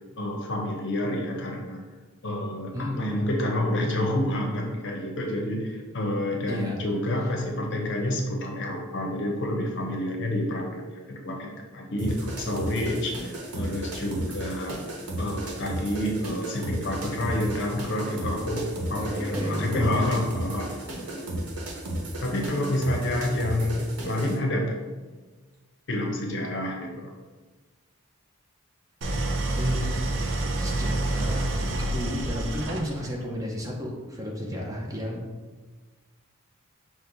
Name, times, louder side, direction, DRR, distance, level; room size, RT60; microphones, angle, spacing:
voice 1, 0.2-1.8 2.2-14.8 15.2-21.2 22.2-24.8 25.9-27.1, left 1 dB, 55° left, 1 dB, 0.7 m, -29 dB
voice 2, 6.5-6.8 19.0-19.9 29.5-35.2, equal, 15° right, -2 dB, 0.6 m, -32 dB
sound 1, 12.0-24.4, right 1 dB, 85° right, 0.9 m, -34 dB
Idling, 29.0-33.2, right 1 dB, 55° right, 0.5 m, -28 dB
6.0 x 2.2 x 3.9 m, 1.3 s
head